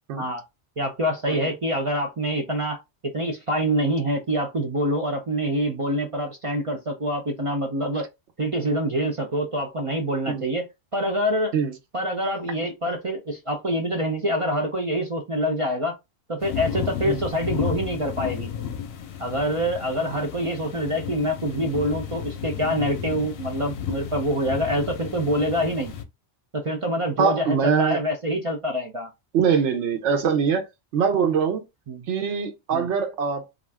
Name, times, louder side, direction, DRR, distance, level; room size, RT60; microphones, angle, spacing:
voice 1, 0.8-8.1 8.4-10.7 10.9-11.5 11.9-16.0 16.3-18.5 19.2-25.9 26.5-29.1 31.9-32.1 32.7-32.9, equal, 45° right, 0.4 m, -26 dB
sound 1, 16.4-26.0, left 8 dB, 65° left, 0.8 m, -33 dB
voice 2, 27.2-28.0 29.3-30.7 30.9-31.6 32.1-33.6, right 6 dB, 85° right, 1.0 m, -23 dB
2.4 x 2.4 x 3.3 m
omnidirectional pair, 1.2 m